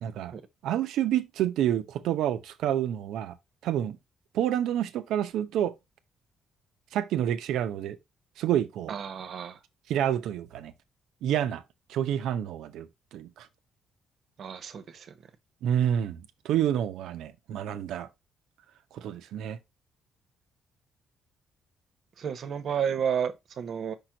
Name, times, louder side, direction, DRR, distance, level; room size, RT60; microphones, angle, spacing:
voice 1, 0.0-0.3 0.6-3.4 3.6-4.0 4.3-5.7 6.9-8.0 8.4-8.9 9.9-10.7 11.2-11.6 11.9-13.5 15.6-18.1 18.9-19.6, right 10 dB, 85° right, 0.7 m, -28 dB
voice 2, 8.9-9.6 14.4-15.2 22.2-23.9, right 7 dB, 60° right, 0.9 m, -31 dB
5.4 x 4.5 x 3.8 m
cardioid pair, 90°, 0 cm